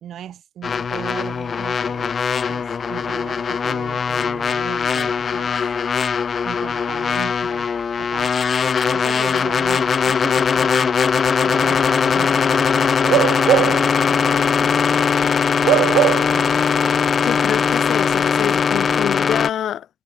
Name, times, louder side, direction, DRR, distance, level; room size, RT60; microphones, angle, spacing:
voice 1, 0.0-2.1 2.5-5.6 6.4-7.7 8.0-8.4 8.9-11.0 11.4-14.7 15.8-16.5, right 10 dB, 70° right, 2.9 m, -37 dB
sound 1, 0.6-19.5, left 6 dB, 45° left, 0.7 m, -20 dB
Bark / Livestock farm animals working animals, 13.0-13.9 14.3-14.5 15.6-16.5 16.8-16.9, right 15 dB, 90° right, 0.4 m, -19 dB
voice 2, 17.2-19.9, left 10 dB, 70° left, 2.3 m, -26 dB
cardioid pair, 90°, 0 cm